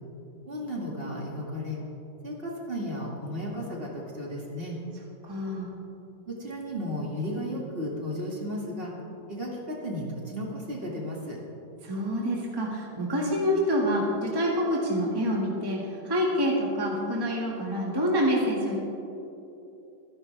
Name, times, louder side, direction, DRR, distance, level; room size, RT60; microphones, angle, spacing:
voice 1, 0.5-1.8 2.2-4.8 6.3-8.9 9.3-11.4, equal, 35° right, -3 dB, 2.3 m, -34 dB
voice 2, 5.2-5.7 11.8-18.8, equal, 15° right, -3 dB, 1.8 m, -27 dB
26.5 x 10.5 x 3.4 m, 2.9 s
omnidirectional pair, 1.9 m